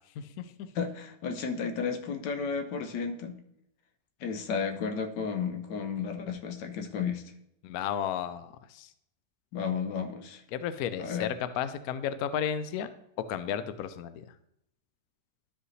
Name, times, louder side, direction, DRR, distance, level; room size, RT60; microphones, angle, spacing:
voice 1, 0.2-0.7 7.6-8.9 10.5-12.9 13.3-14.2, left 9 dB, 70° left, 12 dB, 0.9 m, -33 dB
voice 2, 0.7-3.4 4.2-7.2 9.5-10.4 11.0-11.3, left 6 dB, 85° left, 5 dB, 1.5 m, -33 dB
12.5 x 5.1 x 3.2 m, 0.77 s
omnidirectional pair, 1.9 m